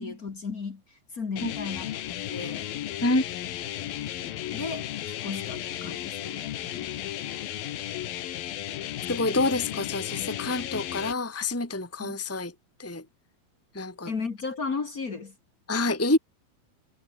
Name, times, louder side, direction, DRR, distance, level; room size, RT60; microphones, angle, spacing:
voice 1, 0.0-1.9 2.3-2.7 4.5-6.5 12.0-12.2 14.0-15.3, left 4 dB, 40° left, 1.4 m, -35 dB
sound 1, 1.4-11.1, left 12 dB, 80° left, 3.3 m, -34 dB
voice 2, 9.1-12.5 12.8-13.0 13.7-14.1 15.7-16.2, left 2 dB, 5° left, 2.8 m, -27 dB
omnidirectional pair, 4.1 m